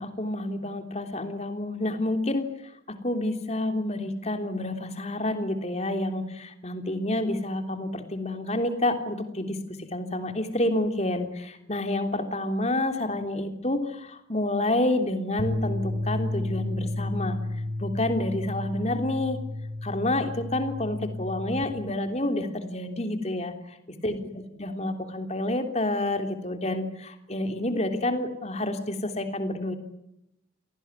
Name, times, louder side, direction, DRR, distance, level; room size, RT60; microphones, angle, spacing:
voice 1, 0.0-2.5 2.9-9.6 9.9-17.4 17.8-19.4 19.8-23.8 24.0-24.2 24.6-29.8, left 1 dB, 35° left, 7 dB, 3.3 m, -29 dB
sound 1, 15.4-21.6, left 1 dB, 50° right, 4.9 m, -32 dB
28.5 x 18.5 x 9.8 m, 0.87 s
head